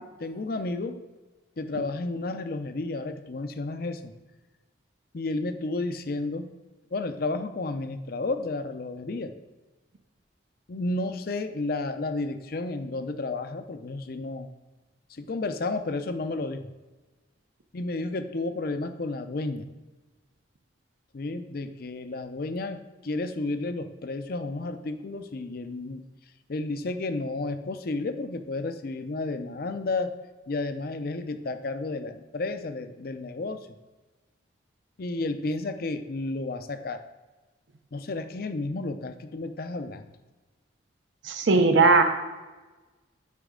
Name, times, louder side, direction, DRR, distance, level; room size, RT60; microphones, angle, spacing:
voice 1, 0.2-1.0 1.6-4.1 5.1-6.5 6.9-9.3 10.7-14.5 15.1-16.7 17.7-19.7 21.1-26.0 26.5-30.1 30.5-33.7 35.0-37.0 37.9-40.1, left 2 dB, 50° left, 9 dB, 0.5 m, -32 dB
voice 2, 41.2-42.0, right 3 dB, 75° right, 6 dB, 0.7 m, -18 dB
8.2 x 5.1 x 3.7 m, 1.2 s
head